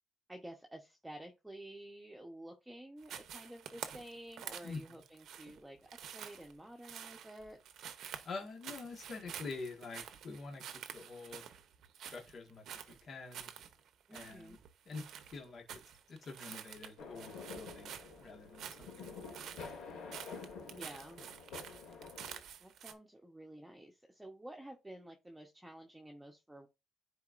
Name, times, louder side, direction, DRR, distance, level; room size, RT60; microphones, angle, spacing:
voice 1, 0.3-7.6 14.1-14.6 20.6-21.3 21.8-22.0 22.6-26.7, right 1 dB, 10° right, 1.0 m, -51 dB
sound 1, 3.0-22.9, right 9 dB, 75° right, 0.8 m, -49 dB
voice 2, 4.6-5.0 8.2-10.6 10.9-11.4 12.1-13.5 14.1-14.6 14.9-15.0 15.3-15.6 16.1-17.9 18.2-19.4, left 4 dB, 55° left, 1.7 m, -46 dB
sound 2, 17.0-22.4, left 5 dB, 90° left, 2.5 m, -49 dB
10.5 x 4.2 x 2.5 m
cardioid pair, 90°, 0 cm